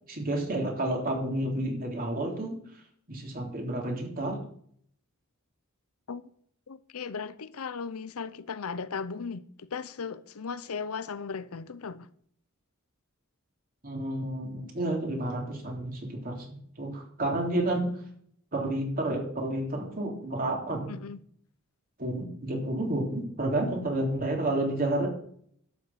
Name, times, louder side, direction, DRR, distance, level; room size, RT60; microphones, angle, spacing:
voice 1, 0.1-2.6 3.1-4.4 13.8-17.9 18.5-20.9 22.0-25.1, right 1 dB, 40° right, 3.3 m, -30 dB
voice 2, 6.7-12.1 20.9-21.2, left 5 dB, 75° left, 0.7 m, -37 dB
12.0 x 6.6 x 7.9 m
head